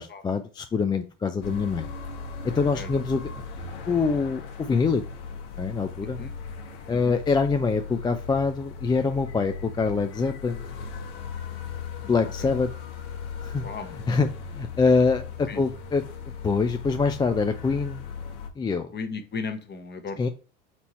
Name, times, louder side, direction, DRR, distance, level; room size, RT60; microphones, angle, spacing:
voice 1, 0.0-1.9 2.6-3.2 3.9-5.0 5.6-6.2 6.9-10.6 12.0-12.7 13.4-13.6 14.1-14.3 14.5-16.0 16.4-18.0 18.6-18.9 20.2-20.3, left 4 dB, 15° left, 6 dB, 0.3 m, -24 dB
sound 1, 1.4-18.5, left 5 dB, 70° left, 1.2 m, -37 dB
voice 2, 18.9-20.3, left 4 dB, 30° left, 8 dB, 1.0 m, -36 dB
4.5 x 2.7 x 4.2 m, 0.35 s
hypercardioid pair, 80°, 36 cm